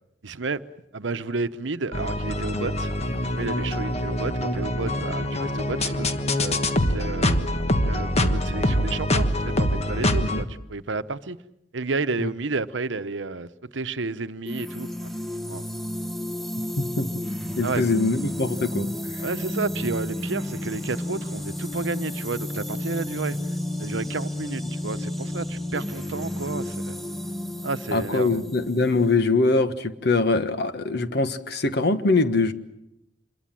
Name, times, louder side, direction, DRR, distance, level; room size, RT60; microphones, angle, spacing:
voice 1, 0.2-0.6 0.9-2.9 3.4-6.1 6.4-6.6 6.9-7.4 7.8-11.4 11.7-15.1 15.5-15.6 17.6-17.8 19.2-23.4 23.8-27.0 27.6-28.4, right 3 dB, 80° right, 0.9 m, -31 dB
sound 1, 1.9-10.4, left 1 dB, 35° left, 1.4 m, -24 dB
sound 2, 14.5-29.2, left 1 dB, ahead, 1.2 m, -32 dB
voice 2, 16.8-17.1 17.6-18.9 27.9-32.5, left 3 dB, 60° left, 1.4 m, -23 dB
26.5 x 22.0 x 7.6 m
head